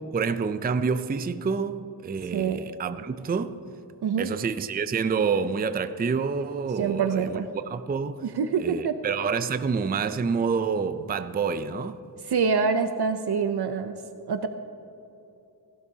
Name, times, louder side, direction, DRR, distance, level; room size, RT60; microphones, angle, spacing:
voice 1, 0.0-3.6 4.2-8.2 8.6-12.0, right 5 dB, 25° right, 0.4 m, -28 dB
voice 2, 2.3-2.6 4.0-4.3 6.8-7.5 8.2-9.0 12.2-13.9 14.3-14.5, right 6 dB, 65° right, 0.6 m, -25 dB
17.5 x 12.5 x 2.8 m
wide cardioid pair, 90°, 42 cm